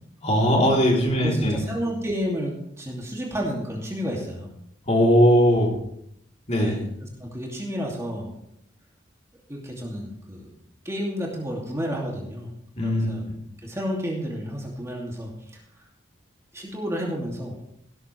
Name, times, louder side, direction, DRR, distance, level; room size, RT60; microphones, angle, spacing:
voice 1, 0.2-1.6 4.9-5.7 6.5-6.8 12.8-13.3, equal, 35° left, -1 dB, 3.5 m, -20 dB
voice 2, 1.2-4.5 6.5-8.3 9.5-10.5 10.8-12.5 12.8-13.3 13.6-15.6 16.5-17.5, equal, 15° right, -2 dB, 2.7 m, -31 dB
16.5 x 13.0 x 3.4 m, 0.73 s
head